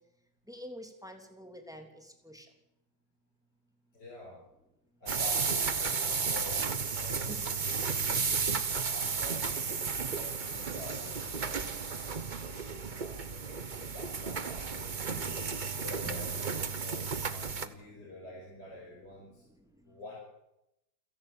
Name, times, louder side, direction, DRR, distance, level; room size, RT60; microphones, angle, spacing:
voice 1, 0.5-2.4 7.3-7.4 16.0-16.3, equal, ahead, 4 dB, 3.1 m, -46 dB
voice 2, 3.9-4.4 5.0-8.5 8.9-9.5 9.8-11.8 12.4-15.5 15.8-16.5 16.8-19.4 19.8-20.2, left 2 dB, 60° left, -4 dB, 6.7 m, -48 dB
sound 1, 5.1-17.7, right 5 dB, 35° right, 0.9 m, -33 dB
29.0 x 11.0 x 8.8 m, 0.88 s
omnidirectional pair, 2.0 m